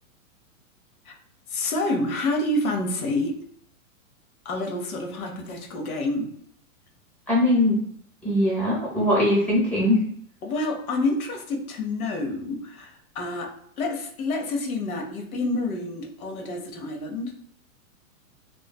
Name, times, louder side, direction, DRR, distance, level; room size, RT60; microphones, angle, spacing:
voice 1, 1.5-3.3 4.4-6.3 10.4-17.3, left 2 dB, 85° left, 3 dB, 0.8 m, -28 dB
voice 2, 7.3-7.8 8.2-10.0, left 1 dB, 5° left, -7 dB, 0.6 m, -21 dB
2.5 x 2.3 x 2.2 m, 0.65 s
hypercardioid pair, 140°, 42 cm